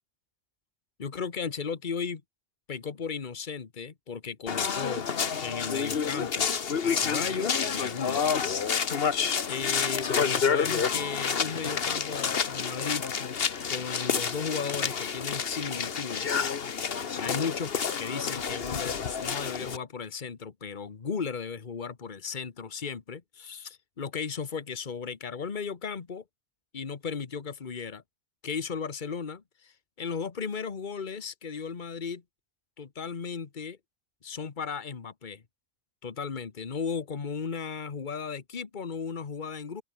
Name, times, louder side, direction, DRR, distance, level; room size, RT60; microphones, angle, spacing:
voice 1, 1.0-2.2 2.7-5.1 5.4-8.3 9.5-13.1 13.7-16.5 17.2-17.7 18.0-26.2 26.7-28.0 28.4-32.2 32.8-33.8 34.2-35.4 36.0-39.8, left 6 dB, 50° left, 1.4 m, -35 dB
sound 1, 4.5-19.8, left 6 dB, 65° left, 1.4 m, -29 dB
open air
omnidirectional pair, 1.1 m